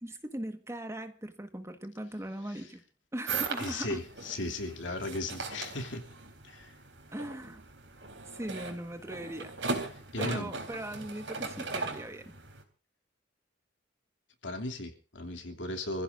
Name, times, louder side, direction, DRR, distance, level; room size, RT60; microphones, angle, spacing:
voice 1, 0.0-2.8 3.1-4.0 7.1-7.6 8.3-9.5 10.2-12.3, right 1 dB, 15° right, 1.6 m, -39 dB
sound 1, 3.3-12.6, right 4 dB, 75° right, 4.0 m, -39 dB
voice 2, 3.6-6.0 6.4-6.7 10.1-10.5 14.4-16.0, left 2 dB, 80° left, 2.9 m, -36 dB
28.0 x 15.5 x 2.6 m
head